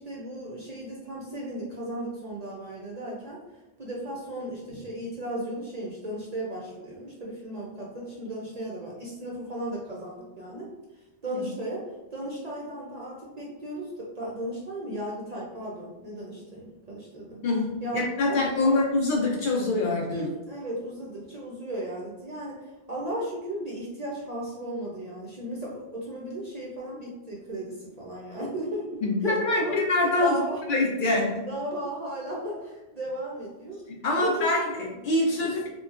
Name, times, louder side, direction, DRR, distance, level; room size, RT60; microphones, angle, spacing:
voice 1, 0.0-3.4 3.8-10.7 11.2-17.4 17.8-18.8 20.1-28.9 29.2-30.6 31.5-33.8 34.1-34.6 35.4-35.7, right 1 dB, 50° right, -4 dB, 0.5 m, -35 dB
voice 2, 17.4-20.3 29.0-30.4 30.7-31.4 34.0-35.7, left 2 dB, 60° left, -2 dB, 0.6 m, -25 dB
2.9 x 2.2 x 2.4 m, 1.1 s
omnidirectional pair, 1.1 m